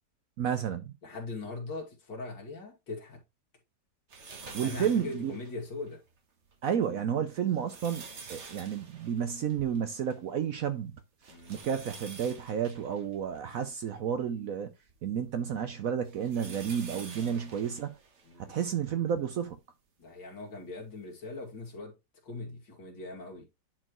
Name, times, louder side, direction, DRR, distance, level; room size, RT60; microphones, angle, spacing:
voice 1, 0.4-0.9 4.5-5.4 6.6-10.9 11.5-14.7 15.0-18.0 18.4-19.6, right 8 dB, 65° right, 0.9 m, -31 dB
voice 2, 1.0-3.2 4.6-6.0 11.3-11.6 17.2-17.5 18.2-18.6 20.0-21.9 22.2-23.5, left 3 dB, 75° left, 2.9 m, -41 dB
sound 1, 4.1-5.9 6.5-6.6 7.3-10.3 10.6-10.7 11.2-14.2 14.9-18.7 19.5-19.6 20.9-21.0, right 4 dB, 40° right, 1.4 m, -48 dB
9.9 x 4.4 x 3.0 m
omnidirectional pair, 2.0 m